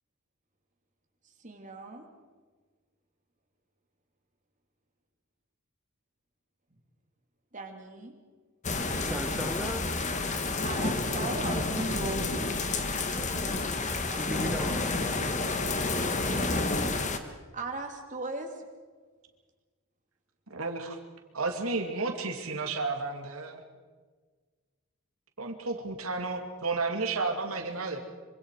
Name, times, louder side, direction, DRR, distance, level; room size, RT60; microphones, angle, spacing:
voice 1, 1.4-2.1 7.5-8.1 10.6-12.2 16.0-16.5 17.5-18.6, right 2 dB, 35° right, 2 dB, 3.0 m, -38 dB
sound 1, 8.6-17.2, left 3 dB, 35° left, 1.5 m, -30 dB
voice 2, 8.8-9.9 12.3-12.6 13.1-15.3, equal, 5° right, 4 dB, 1.0 m, -41 dB
voice 3, 20.5-21.0 21.3-23.6 25.4-28.0, right 3 dB, 75° right, 3 dB, 2.6 m, -32 dB
25.5 x 25.0 x 4.9 m, 1.4 s
head